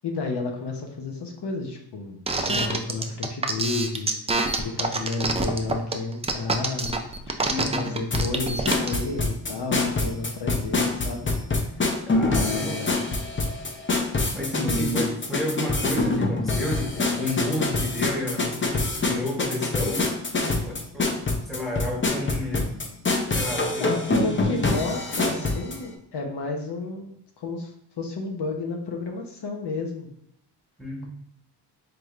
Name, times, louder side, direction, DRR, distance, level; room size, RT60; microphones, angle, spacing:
voice 1, 0.0-7.1 7.4-11.3 12.3-13.1 14.6-15.1 23.8-30.1, left 3 dB, 70° left, 1 dB, 0.8 m, -31 dB
sound 1, 2.3-8.9, right 3 dB, 15° right, 0.3 m, -26 dB
voice 2, 7.5-8.0 12.1-12.9 14.3-20.1 20.6-21.1 21.5-22.8 23.3-23.9 24.3-24.8 30.8-31.1, left 1 dB, ahead, -2 dB, 1.0 m, -31 dB
sound 2, 8.1-25.8, left 3 dB, 30° left, 0.6 m, -25 dB
4.8 x 3.2 x 2.4 m, 0.78 s
wide cardioid pair, 110°, 41 cm